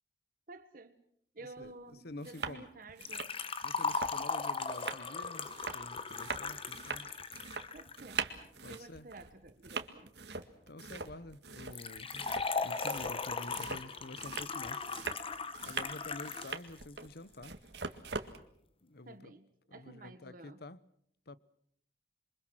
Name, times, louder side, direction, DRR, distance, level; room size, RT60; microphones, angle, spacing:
voice 1, 0.5-1.0 1.3-3.3 7.7-8.3 8.7-10.1 19.0-20.6, right 2 dB, 50° right, 1.4 m, -52 dB
sound 1, 1.6-1.7 2.1-2.6 2.9-18.4, right 5 dB, 70° right, 1.9 m, -42 dB
voice 2, 2.0-2.7 3.6-7.1 8.6-9.1 10.7-12.3 12.6-14.8 15.6-17.5 18.8-19.3 19.7-20.8 21.3-21.4, left 2 dB, 65° left, 1.0 m, -48 dB
Liquid, 3.0-8.0 11.7-16.5 16.8-16.9 17.8-17.9, left 4 dB, 30° left, 1.4 m, -38 dB
27.5 x 24.0 x 6.3 m
head